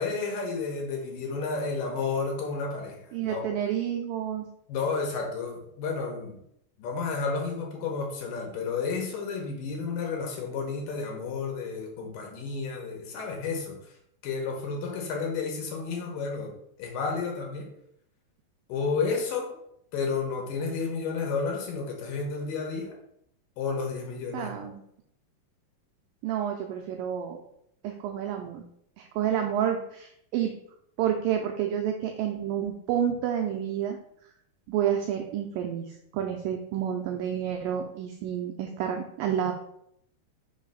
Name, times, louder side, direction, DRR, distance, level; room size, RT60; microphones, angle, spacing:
voice 1, 0.0-3.4 4.7-6.4 6.8-13.9 14.2-16.5 16.8-17.7 18.7-19.5 19.9-22.9 23.6-24.7, left 4 dB, 75° left, 0 dB, 2.3 m, -31 dB
voice 2, 3.1-4.5 24.3-24.8 26.2-27.4 27.8-28.6 29.0-30.5 31.0-34.0 34.7-39.5, right 9 dB, 90° right, 3 dB, 1.9 m, -29 dB
5.5 x 3.2 x 5.3 m, 0.75 s
omnidirectional pair, 4.4 m